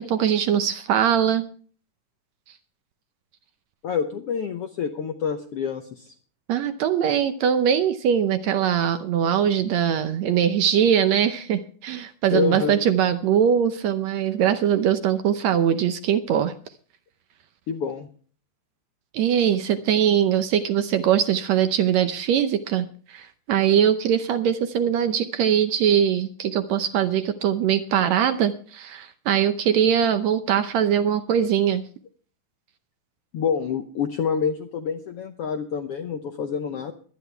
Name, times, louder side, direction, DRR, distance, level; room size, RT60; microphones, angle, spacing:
voice 1, 0.0-1.5 6.5-16.5 19.1-31.8, right 9 dB, 70° right, 9 dB, 1.8 m, -22 dB
voice 2, 3.8-6.1 12.3-12.8 17.7-18.1 33.3-36.9, left 6 dB, 75° left, 6 dB, 1.4 m, -27 dB
22.5 x 10.0 x 3.4 m, 0.43 s
omnidirectional pair, 3.7 m